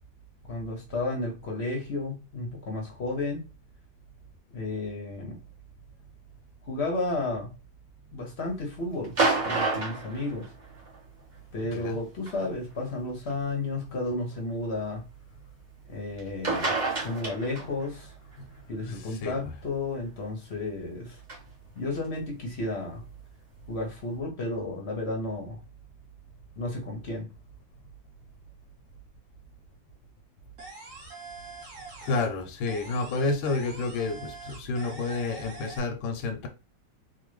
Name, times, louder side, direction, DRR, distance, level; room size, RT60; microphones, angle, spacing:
voice 1, 0.5-3.4 4.5-5.4 6.6-7.5 8.1-10.5 11.5-15.1 15.9-18.1 18.7-21.2 21.7-23.0 23.7-25.6 26.6-27.3, left 2 dB, 55° left, 0.7 m, -32 dB
sound 1, 9.0-11.0 12.3-12.4 13.3-13.4 16.2-16.3 16.4-17.9 21.3-21.4, right 3 dB, 75° right, 0.4 m, -28 dB
voice 2, 18.9-19.4 32.0-36.5, left 3 dB, 90° left, 1.4 m, -30 dB
sound 2, 30.6-32.4 32.7-35.8, right 3 dB, 45° right, 1.4 m, -44 dB
3.4 x 2.2 x 3.1 m
omnidirectional pair, 2.1 m